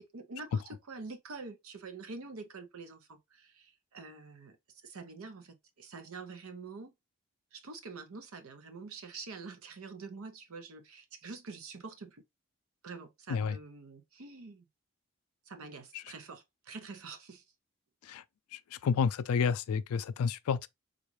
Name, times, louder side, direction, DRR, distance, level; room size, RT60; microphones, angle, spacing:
voice 1, 0.0-4.6 4.8-6.9 7.5-12.2 12.8-14.6 15.5-17.4, right 4 dB, 80° right, 0.7 m, -46 dB
voice 2, 18.8-20.7, left 6 dB, 85° left, 0.3 m, -29 dB
3.8 x 2.4 x 3.0 m
head